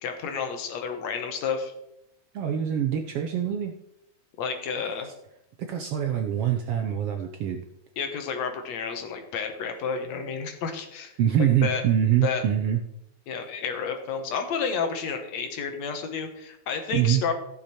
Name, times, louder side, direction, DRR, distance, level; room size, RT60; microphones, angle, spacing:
voice 1, 0.0-1.7 4.4-5.1 8.0-11.1 11.6-11.8 12.2-12.4 13.3-17.3, left 6 dB, 70° left, 6 dB, 2.3 m, -30 dB
voice 2, 2.3-3.7 5.6-7.6 11.2-12.8 16.9-17.2, right 10 dB, 70° right, 4 dB, 1.4 m, -24 dB
15.0 x 6.7 x 4.3 m, 0.80 s
omnidirectional pair, 3.4 m